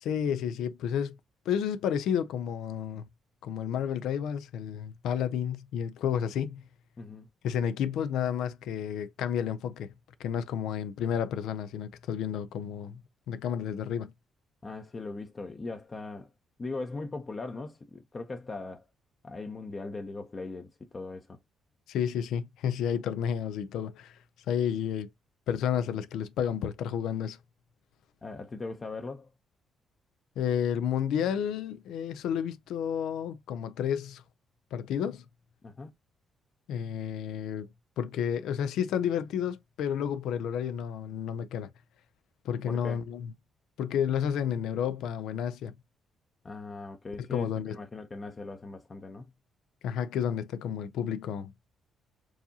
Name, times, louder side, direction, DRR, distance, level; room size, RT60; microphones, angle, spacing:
voice 1, 0.0-1.2 1.5-3.1 3.4-6.6 7.4-9.9 10.2-13.0 13.3-14.1 21.9-24.2 24.5-25.1 25.5-27.4 30.4-34.2 34.7-35.2 36.7-37.7 38.0-41.7 42.4-43.3 43.8-45.7 47.3-47.8 49.8-51.5, left 8 dB, 85° left, 0.3 m, -31 dB
voice 2, 7.0-7.3 14.6-16.3 16.6-18.9 19.2-21.4 28.2-29.3 35.6-35.9 42.7-43.0 46.4-49.3, left 3 dB, 30° left, 0.6 m, -39 dB
4.7 x 2.7 x 2.7 m
cardioid pair, 90°, 0 cm